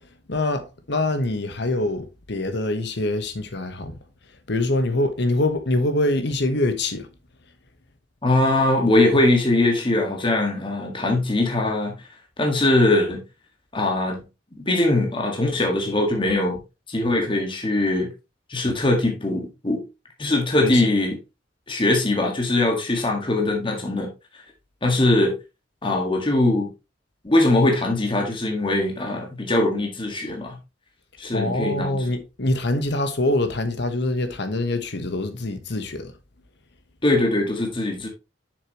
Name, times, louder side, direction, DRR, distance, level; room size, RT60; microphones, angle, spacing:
voice 1, 0.3-4.0 4.5-7.1 20.6-20.9 31.3-36.1, left 1 dB, 65° left, 1.2 m, -24 dB
voice 2, 8.2-12.0 12.4-13.2 13.7-14.2 14.5-16.6 16.9-18.1 18.5-19.8 20.2-21.2 21.7-24.1 24.8-25.4 25.8-26.7 27.2-30.6 31.2-31.9 37.0-38.1, left 2 dB, 25° left, 1.7 m, -21 dB
7.4 x 6.5 x 3.0 m
head